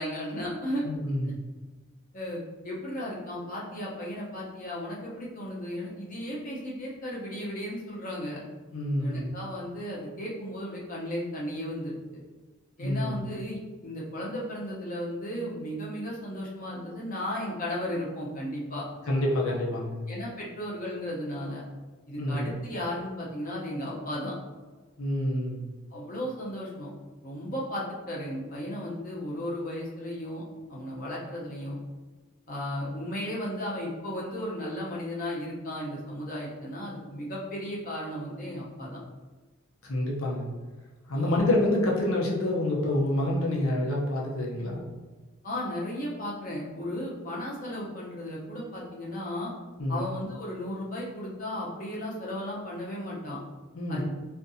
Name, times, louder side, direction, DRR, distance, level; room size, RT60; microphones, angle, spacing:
voice 1, 0.0-0.8 1.2-1.3 2.1-8.4 9.0-12.2 12.8-18.8 20.1-21.6 22.1-24.3 25.9-26.9 27.2-30.4 30.7-31.8 32.5-39.0 41.1-41.4 44.6-44.7 45.4-49.5 49.9-53.4 53.9-54.0, left 1 dB, 40° left, -4 dB, 0.8 m, -35 dB
voice 2, 0.8-1.4 8.7-9.3 12.8-13.2 19.1-20.1 22.2-22.6 25.0-25.7 39.8-40.5 41.1-44.9 49.8-50.1 53.7-54.0, left 1 dB, 85° left, -2 dB, 0.7 m, -27 dB
3.6 x 2.6 x 2.7 m, 1.3 s
head